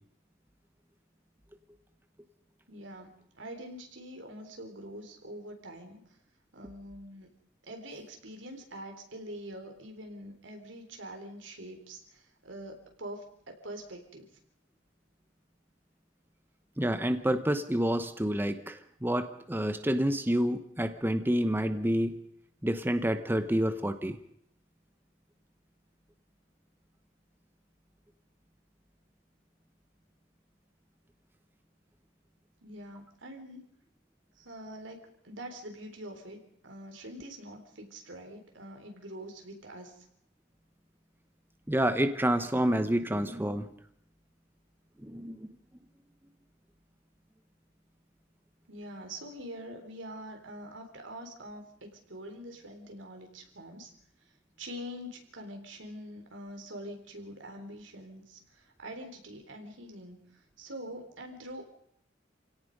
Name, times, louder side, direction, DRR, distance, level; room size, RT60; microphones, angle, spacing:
voice 1, 2.7-6.0 6.5-7.3 7.6-14.3 32.6-33.6 34.4-40.0 48.7-53.9 54.6-61.7, equal, 90° right, 4 dB, 4.0 m, -45 dB
voice 2, 16.8-22.2 22.6-24.2 41.7-43.7 45.0-45.5, equal, 10° right, 9 dB, 1.0 m, -28 dB
28.5 x 17.5 x 5.4 m, 0.68 s
head